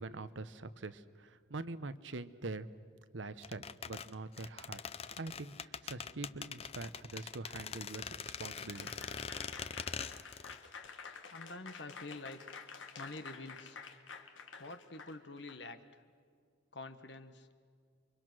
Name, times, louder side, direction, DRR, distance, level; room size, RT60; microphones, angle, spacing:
voice 1, 0.0-2.7 3.1-4.8 5.2-8.9, right 3 dB, 80° right, 13 dB, 1.0 m, -44 dB
sound 1, 3.4-10.6 10.9-11.0, left 6 dB, 30° left, 0.6 m, -43 dB
Applause / Crowd, 8.4-15.6, left 5 dB, 85° left, 1.6 m, -50 dB
voice 2, 11.3-12.4 13.0-13.8 14.6-15.8 16.7-17.5, left 2 dB, 70° left, 9 dB, 1.5 m, -47 dB
29.5 x 23.5 x 6.2 m, 2.1 s
head